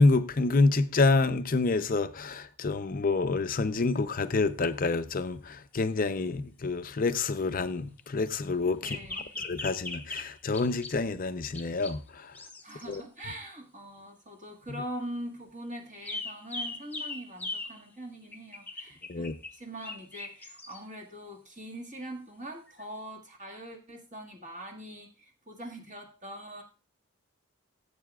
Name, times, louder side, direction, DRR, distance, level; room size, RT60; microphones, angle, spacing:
voice 1, 0.0-9.0 9.4-12.3 12.9-13.0 19.1-19.3, left 3 dB, 40° left, 0.6 m, -27 dB
sound 1, 3.9-4.0 8.8-11.0 11.5-12.0 12.3-13.0 16.0-17.8 18.3-20.8 22.7-22.8, left 3 dB, 10° left, 0.9 m, -39 dB
voice 2, 8.8-9.3 12.6-26.6, right 1 dB, 35° right, 1.8 m, -42 dB
16.0 x 8.3 x 2.4 m
head